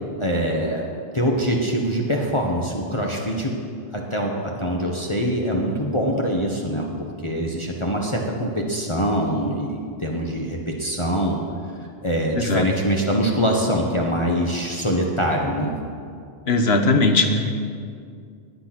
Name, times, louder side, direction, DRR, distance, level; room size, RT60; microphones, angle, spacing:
voice 1, 0.2-0.8 1.1-3.6 3.9-6.9 7.2-11.4 12.0-15.8, equal, 30° left, -1 dB, 1.4 m, -24 dB
voice 2, 16.5-17.5, left 2 dB, 75° left, 6 dB, 1.4 m, -19 dB
21.0 x 8.4 x 6.1 m, 2.3 s
omnidirectional pair, 1.1 m